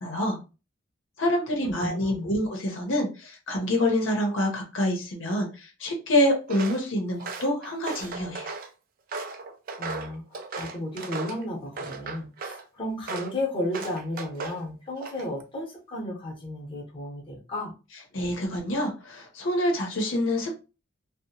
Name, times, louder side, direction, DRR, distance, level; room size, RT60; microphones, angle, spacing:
voice 1, 0.0-0.4 1.2-8.5 18.1-20.5, left 1 dB, 65° left, 1 dB, 0.7 m, -26 dB
voice 2, 1.7-2.3 9.8-17.7, left 1 dB, 25° left, -3 dB, 0.8 m, -33 dB
Walk footsteps, 6.5-6.8 7.2-8.7 9.1-11.4 11.8-12.6 13.1-13.4 13.7-14.6 15.0-15.4, right 4 dB, 45° right, 0.3 m, -36 dB
2.7 x 2.1 x 2.8 m, 0.31 s
head